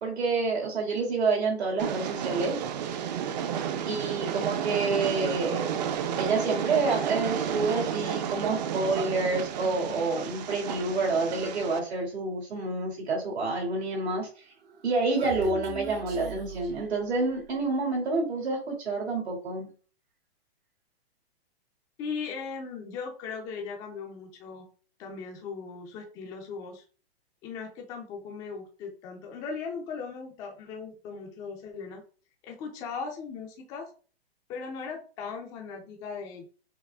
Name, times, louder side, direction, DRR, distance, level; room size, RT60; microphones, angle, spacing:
voice 1, 0.0-2.6 3.9-5.6 6.2-14.3 14.8-19.7, right 3 dB, 85° right, 1 dB, 2.2 m, -28 dB
Train, 1.8-11.8, right 8 dB, 40° right, 0.5 m, -32 dB
Human voice, 14.6-17.6, right 7 dB, 60° right, 1.0 m, -41 dB
voice 2, 22.0-24.7 25.0-26.8 27.4-32.0 32.4-33.9 34.5-36.5, left 5 dB, 15° left, 2 dB, 0.4 m, -38 dB
5.8 x 2.1 x 3.3 m, 0.38 s
hypercardioid pair, 145°, 32 cm